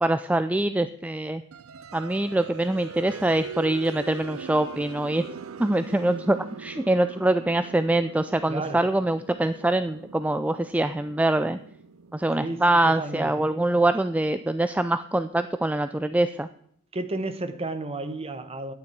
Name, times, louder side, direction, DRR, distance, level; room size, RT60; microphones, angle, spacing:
voice 1, 0.0-1.4 1.9-5.2 5.6-11.6 12.1-16.5, right 1 dB, 5° right, 0.3 m, -24 dB
sound 1, 1.5-14.0, right 5 dB, 85° right, 0.5 m, -42 dB
voice 2, 8.5-8.9 12.4-13.3 16.9-18.7, right 2 dB, 30° right, 1.0 m, -32 dB
11.5 x 9.5 x 4.7 m
head